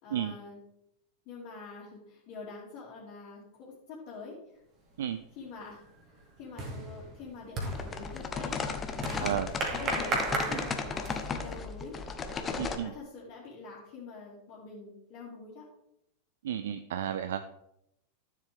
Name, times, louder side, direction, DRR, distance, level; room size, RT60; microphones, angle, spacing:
voice 1, 0.0-0.6 1.2-4.4 5.4-5.9 6.4-12.0 12.3-15.7, left 4 dB, 40° left, -7 dB, 2.7 m, -46 dB
sound 1, 4.9-5.3 5.7-11.4, right 2 dB, 30° right, 2.3 m, -36 dB
sound 2, 7.7-12.8, left 5 dB, 20° left, 1.0 m, -35 dB
voice 2, 12.6-12.9 16.4-17.4, right 10 dB, 60° right, 11 dB, 0.5 m, -32 dB
13.0 x 7.5 x 3.6 m, 0.80 s
figure-of-eight pair, 90°, 0 cm